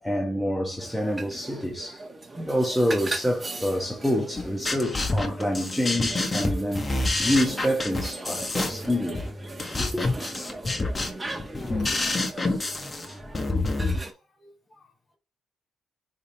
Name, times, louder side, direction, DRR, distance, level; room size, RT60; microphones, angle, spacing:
voice 1, 0.0-2.0 2.3-9.2 9.8-10.0, equal, ahead, 1.4 m, -27 dB
sound 1, 0.8-14.1, right 2 dB, 20° right, 1.3 m, -39 dB
sound 2, 4.4-13.9, left 2 dB, 25° left, 1.5 m, -28 dB
voice 2, 13.3-14.9, left 2 dB, 40° left, 4.1 m, -55 dB
9.7 x 3.6 x 2.9 m
cardioid pair, 90°, 0 cm